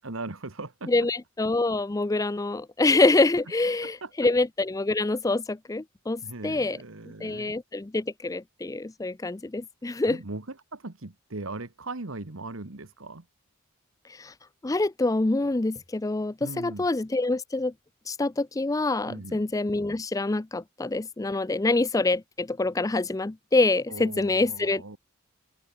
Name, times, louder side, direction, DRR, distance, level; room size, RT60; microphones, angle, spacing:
voice 1, 0.0-1.1 3.8-4.1 6.2-7.5 10.0-13.2 16.4-16.9 19.1-19.4 23.9-25.0, right 2 dB, 65° right, 1.5 m, -39 dB
voice 2, 0.9-6.8 7.2-10.2 14.2-14.3 14.6-17.7 18.1-25.0, left 2 dB, 15° left, 0.4 m, -26 dB
open air
head